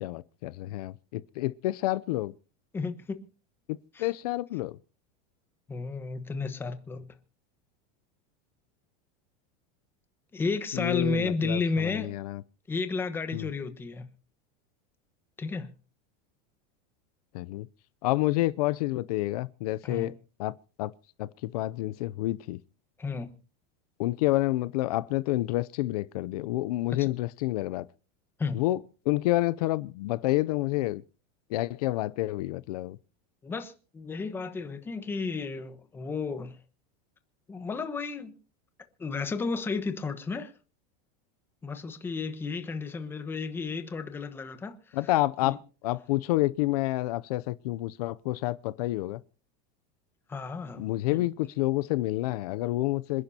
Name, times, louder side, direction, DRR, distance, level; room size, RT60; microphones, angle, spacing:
voice 1, 0.0-2.3 4.0-4.8 10.7-12.4 13.3-13.5 17.3-17.7 18.0-20.1 20.4-20.9 21.2-22.6 24.0-27.9 28.5-28.8 29.0-31.0 31.5-33.0 44.9-49.2 50.7-53.2, left 17 dB, 65° left, 0.6 m, -29 dB
voice 2, 2.7-3.2 3.9-4.1 5.7-7.1 10.3-12.1 12.7-14.1 15.4-15.7 19.8-20.1 23.0-23.3 26.9-27.1 28.4-28.6 33.4-36.6 37.5-38.3 39.0-40.5 41.6-45.0 45.4-45.6 50.3-50.8 51.1-51.2, left 4 dB, 10° left, 1.1 m, -32 dB
27.0 x 10.5 x 2.8 m
supercardioid pair, 175°, 21 cm